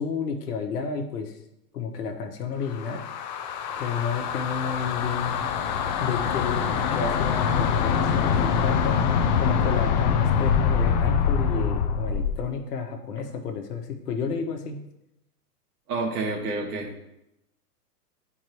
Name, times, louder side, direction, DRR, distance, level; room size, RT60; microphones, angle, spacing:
voice 1, 0.0-1.4 1.7-3.0 3.8-5.3 6.0-9.0 9.4-14.8, left 6 dB, 75° left, 3 dB, 1.3 m, -31 dB
sound 1, 2.7-12.4, left 7 dB, 30° left, 0.4 m, -24 dB
voice 2, 15.9-17.1, right 3 dB, 70° right, 1 dB, 1.8 m, -29 dB
10.0 x 4.5 x 3.0 m, 0.86 s
hypercardioid pair, 130°, 48 cm